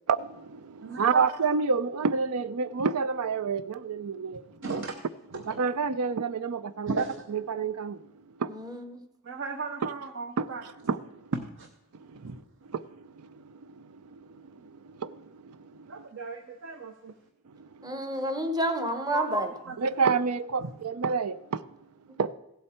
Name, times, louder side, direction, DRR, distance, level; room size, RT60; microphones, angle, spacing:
voice 1, 0.1-4.6 5.5-8.1 8.4-8.5 9.8-9.9 10.4-11.3 11.9-12.4 12.7-16.1 17.5-18.0 19.8-21.6 22.2-22.3, right 5 dB, 85° right, 0.5 m, -30 dB
voice 2, 0.8-1.2 4.6-5.0 5.3-5.6 6.9-7.2 9.2-10.6 11.6-11.7 12.2-12.4 15.9-17.1 19.1-19.8 20.6-20.7, right 4 dB, 55° right, 0.8 m, -35 dB
voice 3, 8.5-9.0 17.8-19.5, right 1 dB, 15° right, 1.0 m, -29 dB
16.0 x 7.9 x 4.4 m
head